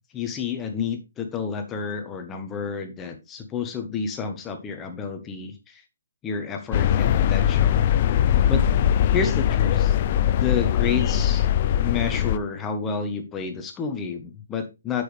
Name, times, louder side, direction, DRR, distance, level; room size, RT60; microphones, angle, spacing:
voice 1, 0.1-5.8 6.2-7.8 8.5-8.6 9.1-9.9 10.3-11.5 11.8-15.0, left 6 dB, 15° left, 6 dB, 1.3 m, -30 dB
sound 1, 6.7-12.4, left 10 dB, 40° left, 0.5 m, -21 dB
8.1 x 6.4 x 3.4 m, 0.26 s
hypercardioid pair, 155°, 0 cm